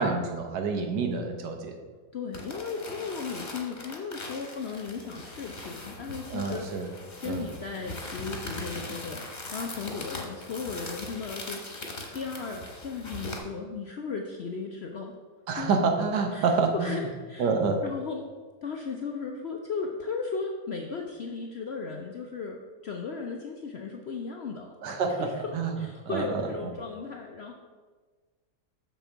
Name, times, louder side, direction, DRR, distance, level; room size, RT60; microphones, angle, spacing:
voice 1, 0.0-1.8 6.3-6.9 7.2-7.4 15.5-17.0 17.4-17.8 24.8-25.7 26.1-26.7, right 4 dB, 85° right, 4 dB, 1.6 m, -28 dB
voice 2, 2.1-6.8 7.2-9.2 9.5-11.6 12.1-15.1 15.6-15.7 16.3-17.5 17.8-18.3 18.6-24.8 25.2-25.3 25.8-27.6, left 5 dB, 75° left, 2 dB, 0.6 m, -36 dB
sound 1, 2.3-13.4, left 2 dB, 30° left, 1.1 m, -40 dB
6.7 x 6.1 x 4.6 m, 1.4 s
omnidirectional pair, 1.8 m